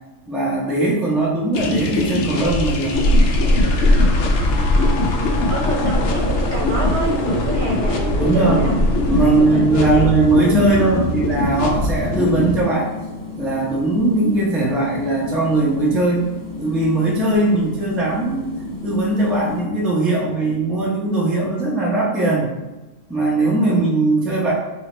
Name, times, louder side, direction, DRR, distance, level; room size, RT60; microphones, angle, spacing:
voice 1, 0.3-3.0 8.2-8.6 9.1-12.9 13.4-16.2 16.6-18.5 18.8-22.5 23.1-24.5, right 2 dB, ahead, -4 dB, 0.4 m, -19 dB
sound 1, 1.5-12.6, left 2 dB, 65° left, 0.7 m, -23 dB
sound 2, 2.9-9.4, left 1 dB, 85° left, 1.1 m, -20 dB
voice 2, 4.8-8.8 9.2-10.1 10.8-11.1, right 2 dB, 65° right, -2 dB, 0.7 m, -28 dB
sound 3, 9.0-19.6, left 2 dB, 40° left, 0.9 m, -34 dB
3.0 x 2.8 x 4.2 m, 1.1 s
omnidirectional pair, 1.5 m